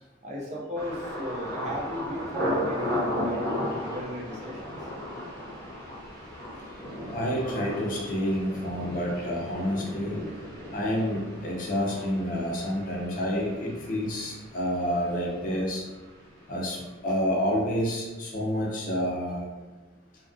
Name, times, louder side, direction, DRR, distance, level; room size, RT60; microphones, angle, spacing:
voice 1, 0.2-4.8, equal, 35° right, -2 dB, 0.5 m, -35 dB
Thunder, 0.8-16.5 16.8-17.4 17.8-18.1, equal, 80° right, 1.1 m, -35 dB
voice 2, 7.1-10.2 10.7-15.8 16.5-19.5, equal, 45° left, -2 dB, 0.5 m, -29 dB
2.7 x 2.4 x 2.5 m, 1.2 s
head